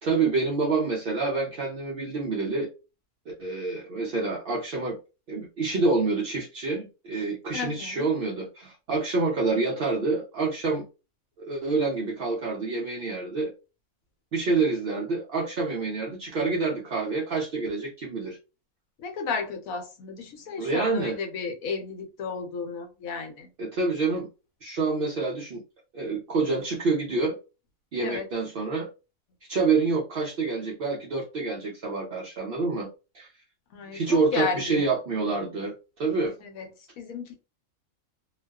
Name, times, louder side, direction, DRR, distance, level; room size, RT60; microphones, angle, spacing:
voice 1, 0.0-2.7 3.3-5.0 5.3-10.8 11.4-13.5 14.3-18.4 20.6-21.2 23.6-24.3 24.6-25.6 25.9-27.4 27.9-28.9 29.5-32.9 33.1-33.3 33.9-36.4, right 3 dB, 65° right, 0.5 m, -27 dB
voice 2, 7.5-8.1 19.0-23.5 28.0-28.3 33.7-34.8 36.4-36.7 37.0-37.4, left 5 dB, 80° left, 1.1 m, -33 dB
2.4 x 2.2 x 2.2 m
omnidirectional pair, 1.5 m